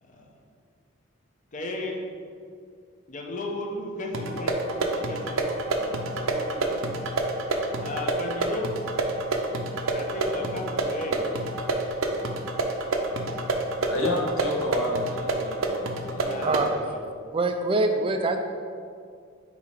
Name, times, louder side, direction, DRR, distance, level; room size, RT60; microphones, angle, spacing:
voice 1, 0.0-0.3 1.5-2.0 3.1-6.8 7.8-8.6 9.9-11.2 16.3-17.0, left 1 dB, 40° left, 0 dB, 0.8 m, -35 dB
sound 1, 4.1-16.7, right 2 dB, 85° right, 0.6 m, -28 dB
voice 2, 13.8-16.5, left 1 dB, 70° left, -2 dB, 1.2 m, -30 dB
voice 3, 17.3-18.4, right 2 dB, 25° right, 6 dB, 0.3 m, -24 dB
8.4 x 2.9 x 4.5 m, 2.2 s
head